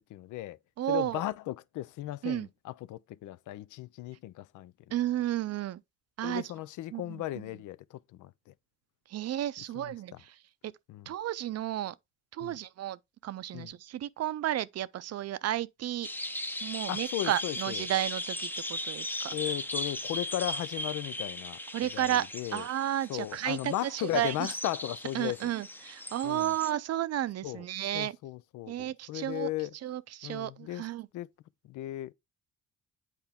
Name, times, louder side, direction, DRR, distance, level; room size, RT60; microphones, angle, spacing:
voice 1, 0.0-0.6 0.9-4.7 6.2-8.3 9.7-10.2 10.9-11.1 12.4-12.6 13.5-13.7 16.9-17.9 19.3-22.7 23.1-25.4 26.2-26.5 27.4-27.6 27.9-29.7 30.2-30.8 31.1-31.3 31.6-32.1, left 14 dB, 80° left, 0.5 m, -36 dB
voice 2, 0.8-1.2 2.2-2.5 4.9-5.8 6.2-6.4 6.9-7.2 9.1-10.3 10.6-10.7 11.1-11.9 12.3-16.1 16.6-19.4 21.7-22.3 22.5-24.5 25.1-28.2 28.7-29.5 29.8-31.1, right 12 dB, 55° right, 0.5 m, -32 dB
sound 1, 16.0-26.7, left 1 dB, 5° left, 0.6 m, -38 dB
8.2 x 4.4 x 3.5 m
cardioid pair, 90°, 30 cm